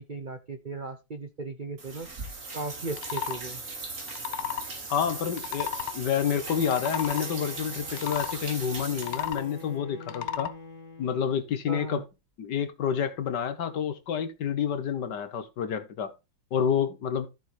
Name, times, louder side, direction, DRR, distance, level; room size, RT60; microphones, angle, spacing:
voice 1, 0.0-2.1 2.5-3.6 11.7-12.0, right 3 dB, 65° right, 0.4 m, -37 dB
sound 1, 1.8-9.6, right 3 dB, 40° right, 2.7 m, -39 dB
sound 2, 2.9-3.4 4.0-4.7 5.3-6.0 6.6-7.3 7.9-8.3 8.9-9.5 10.0-10.5, left 11 dB, 85° left, 1.6 m, -33 dB
voice 2, 4.9-10.5 11.0-12.0 12.4-16.1 16.5-17.3, left 8 dB, 60° left, 1.6 m, -29 dB
Bowed string instrument, 6.1-11.5, left 2 dB, 15° left, 2.9 m, -46 dB
13.5 x 6.9 x 3.2 m
omnidirectional pair, 2.3 m